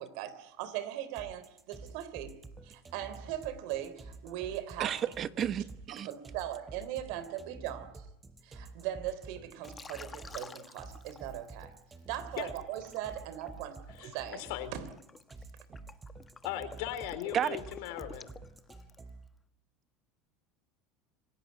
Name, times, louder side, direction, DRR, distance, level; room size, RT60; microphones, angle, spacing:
voice 1, 0.0-2.4 2.6-5.0 5.9-8.1 8.4-11.7 12.1-14.9, right 12 dB, 70° right, 3.2 m, -39 dB
sound 1, 1.2-19.3, right 3 dB, 20° right, 4.9 m, -50 dB
voice 2, 4.8-6.1 17.3-17.6, right 9 dB, 40° right, 1.0 m, -32 dB
Liquid, 9.6-11.6 12.1-19.1, left 4 dB, 20° left, 1.2 m, -50 dB
voice 3, 14.0-14.7 16.4-18.3, left 12 dB, 75° left, 3.7 m, -38 dB
26.0 x 17.5 x 9.4 m
supercardioid pair, 100°, 0 cm